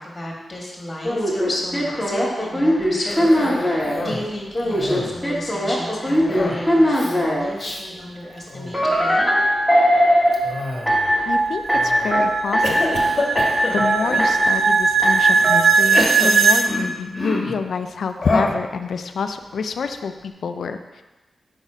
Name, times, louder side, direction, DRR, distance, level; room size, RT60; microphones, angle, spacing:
voice 1, 0.0-9.3, left 1 dB, 30° left, -2 dB, 1.8 m, -33 dB
sound 1, 1.0-4.0 4.5-7.5 8.7-10.4 10.9-11.3 11.7-12.2 12.5-13.0 13.3-13.9 14.2-14.7 15.0-15.5, equal, 5° right, 1.7 m, -19 dB
Cough, 3.1-4.3 4.6-5.2 6.3-6.6 6.9-7.1 7.6-7.8 8.4-8.8 10.3-11.1 11.7-12.1 12.6-14.4 15.1-15.2 15.8-17.6 18.2-18.6, left 2 dB, 45° left, 1.1 m, -27 dB
sound 2, 9.5-16.7, right 5 dB, 75° right, 0.4 m, -20 dB
voice 2, 11.3-13.0 13.7-21.0, left 5 dB, 80° left, 8 dB, 0.3 m, -27 dB
5.3 x 4.0 x 4.9 m, 1.1 s
cardioid pair, 85°, 0 cm